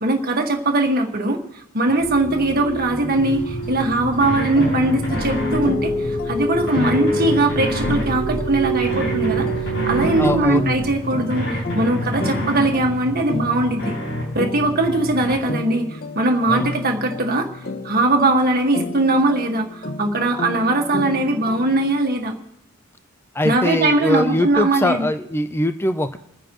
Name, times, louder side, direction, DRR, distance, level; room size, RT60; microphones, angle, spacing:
voice 1, 0.0-9.5 9.9-13.9 14.4-17.5 17.8-22.3 23.4-25.1, right 2 dB, 45° right, 2 dB, 1.7 m, -20 dB
sound 1, 2.0-10.9, right 2 dB, 85° left, 2.7 m, -27 dB
sound 2, 3.1-15.4, equal, 65° left, 5.8 m, -29 dB
sound 3, 4.6-22.0, left 2 dB, 45° left, 0.8 m, -32 dB
voice 2, 10.2-10.9 16.5-16.7 23.3-26.2, left 1 dB, 10° left, 9 dB, 0.5 m, -22 dB
29.5 x 10.0 x 3.1 m, 0.79 s
head